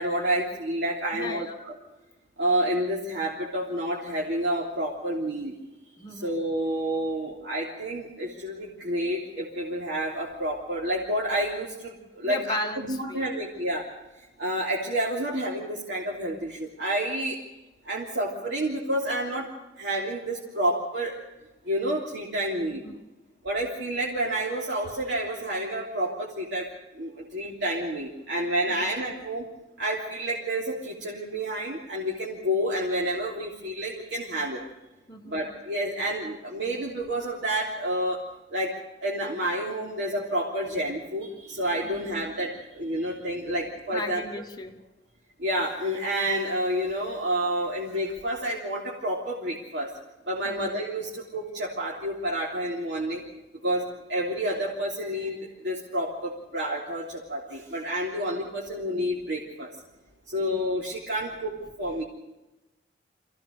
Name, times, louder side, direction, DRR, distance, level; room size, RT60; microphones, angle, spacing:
voice 1, 0.0-1.7 2.4-5.5 6.1-12.6 12.9-13.9 14.4-17.4 17.8-19.5 19.8-21.1 21.6-22.8 23.4-26.7 26.9-29.5 29.8-34.6 35.2-38.2 38.5-38.7 39.0-44.2 45.4-49.9 50.3-53.2 53.6-55.4 55.6-59.7 60.3-62.0, right 1 dB, 90° right, -3 dB, 3.3 m, -29 dB
voice 2, 1.1-1.5 6.0-6.4 12.2-13.4 22.7-22.9 28.7-28.8 35.1-35.4 41.8-42.2 43.9-44.8 50.5-50.7, left 1 dB, 25° left, 4 dB, 1.8 m, -36 dB
26.0 x 16.5 x 6.7 m, 1.0 s
head